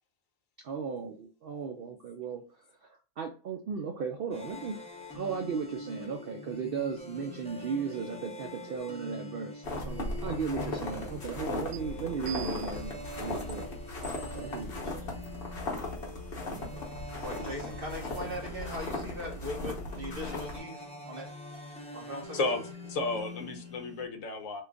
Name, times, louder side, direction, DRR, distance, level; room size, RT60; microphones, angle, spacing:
voice 1, 0.6-2.4 3.2-4.8 5.1-13.7 14.2-15.1 16.4-16.8, right 6 dB, 75° right, 0.5 m, -36 dB
sound 1, 4.3-24.1, left 1 dB, 5° left, 0.5 m, -45 dB
sound 2, 9.6-20.6, left 2 dB, 45° left, 1.1 m, -37 dB
sound 3, 11.7-11.8 12.3-12.9 13.5-13.6 14.0-14.6 15.2-15.3 15.8-16.0, right 8 dB, 90° right, 1.2 m, -44 dB
voice 2, 17.2-21.3 21.9-22.4, left 1 dB, 45° right, 0.8 m, -40 dB
voice 3, 22.3-24.6, left 3 dB, 70° left, 1.1 m, -33 dB
3.1 x 2.5 x 3.4 m
omnidirectional pair, 1.5 m